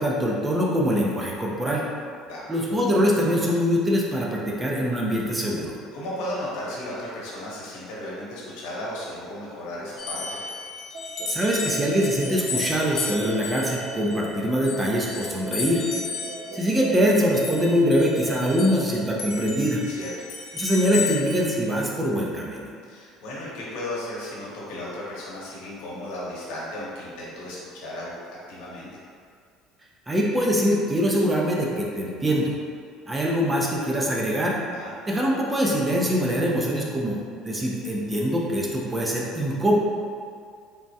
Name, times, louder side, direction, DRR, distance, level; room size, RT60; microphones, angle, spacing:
voice 1, 0.0-1.8 2.5-5.7 11.3-15.8 16.5-19.8 20.5-22.7 30.1-32.5 33.1-34.6 35.1-37.2 37.4-39.7, equal, 15° right, -3 dB, 0.4 m, -23 dB
voice 2, 5.9-10.4 19.8-20.3 22.9-28.1 28.5-28.9 34.7-34.9, left 1 dB, 85° left, -6 dB, 0.9 m, -35 dB
sound 1, 10.0-18.9 19.2-21.5, left 5 dB, 70° left, 0.5 m, -34 dB
sound 2, 10.9-19.2, right 2 dB, 85° right, 0.4 m, -39 dB
3.5 x 2.1 x 2.7 m, 2.1 s
cardioid pair, 120°, 0 cm